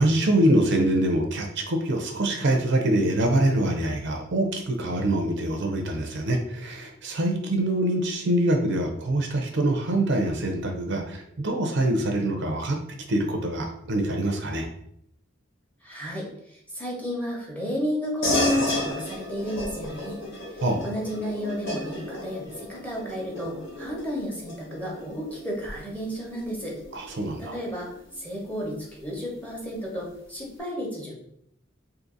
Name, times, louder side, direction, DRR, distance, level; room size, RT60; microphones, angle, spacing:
voice 1, 0.0-12.8 13.1-14.7 20.6-20.8 26.9-27.6, right 1 dB, 55° right, 3 dB, 0.5 m, -24 dB
voice 2, 15.8-20.2 20.5-26.8 27.4-31.2, equal, 5° left, -3 dB, 0.9 m, -33 dB
sound 1, 18.2-28.1, left 1 dB, 60° left, 1.2 m, -32 dB
2.7 x 2.6 x 3.8 m, 0.72 s
head